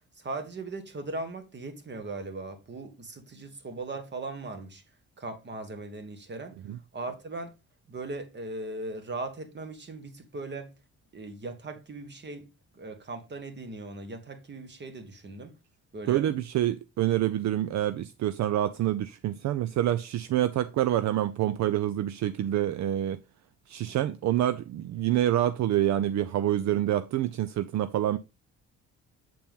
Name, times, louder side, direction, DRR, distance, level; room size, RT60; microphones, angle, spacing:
voice 1, 0.1-4.8 5.2-6.6 6.9-7.5 7.9-10.7 11.1-12.5 12.7-15.6 15.9-16.2, right 2 dB, 35° right, 1.5 m, -38 dB
voice 2, 16.1-23.2 23.7-28.2, right 12 dB, 65° right, 0.5 m, -27 dB
7.7 x 4.2 x 3.6 m
cardioid pair, 90°, 30 cm